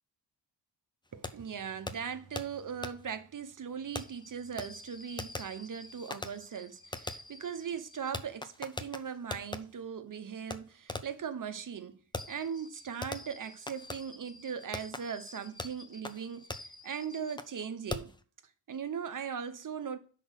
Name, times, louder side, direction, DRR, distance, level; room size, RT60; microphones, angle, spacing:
voice 1, 1.1-12.0 12.3-18.1 18.7-20.0, right 7 dB, 45° right, 0.9 m, -39 dB
Fireworks, 1.2-1.3 1.9-2.0 2.4-2.5 2.8-2.9 4.0-9.6 10.5-10.6 10.9-11.2 12.1-17.6 17.9-18.2, left 2 dB, 10° left, 0.5 m, -42 dB
6.0 x 4.9 x 6.5 m
wide cardioid pair, 120°, 44 cm